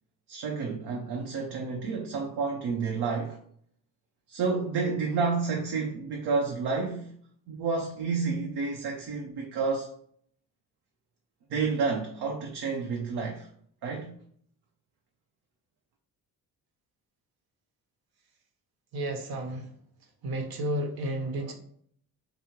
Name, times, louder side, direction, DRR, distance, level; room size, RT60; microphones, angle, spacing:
voice 1, 0.3-3.4 4.3-7.1 7.5-9.9 11.5-13.5 13.8-14.1, right 4 dB, 85° right, 0.7 m, -30 dB
voice 2, 18.9-19.7 20.2-21.5, right 1 dB, 70° right, 1.1 m, -32 dB
5.5 x 2.1 x 3.1 m
cardioid pair, 95°, 38 cm